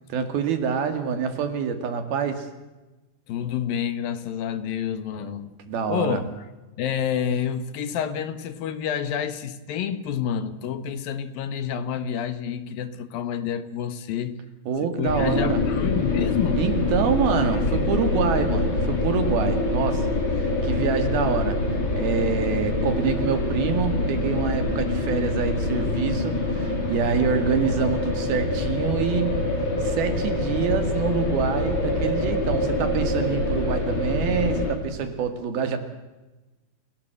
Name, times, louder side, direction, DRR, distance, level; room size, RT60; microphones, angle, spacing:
voice 1, 0.1-2.5 5.1-5.4 5.7-6.2 14.7-15.6 16.6-20.2 20.6-21.6 21.9-29.4 29.8-35.8, right 6 dB, 75° right, 8 dB, 4.0 m, -26 dB
voice 2, 3.3-5.5 5.9-6.5 6.8-14.4 15.0-16.6, left 8 dB, 70° left, 12 dB, 3.0 m, -28 dB
sound 1, 15.1-34.7, left 2 dB, 30° left, 4.2 m, -25 dB
29.5 x 17.5 x 7.9 m, 1.1 s
omnidirectional pair, 4.4 m